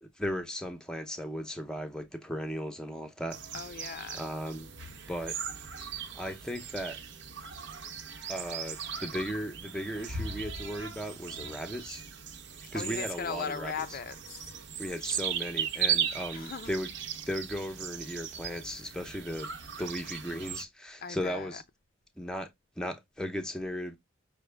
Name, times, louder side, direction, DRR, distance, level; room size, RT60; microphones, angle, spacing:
voice 1, 0.0-3.4 4.1-4.7 5.1-5.4 6.1-7.0 8.3-12.0 12.7-14.0 14.8-16.9 17.2-19.5 19.8-21.6 22.2-22.5 22.8-24.0, equal, 5° left, 0.6 m, -36 dB
sound 1, 3.3-20.6, right 7 dB, 55° right, 0.7 m, -37 dB
voice 2, 3.5-4.2 12.7-14.5 16.3-16.7 21.0-21.5, left 6 dB, 45° left, 0.4 m, -38 dB
6.0 x 2.2 x 3.3 m
head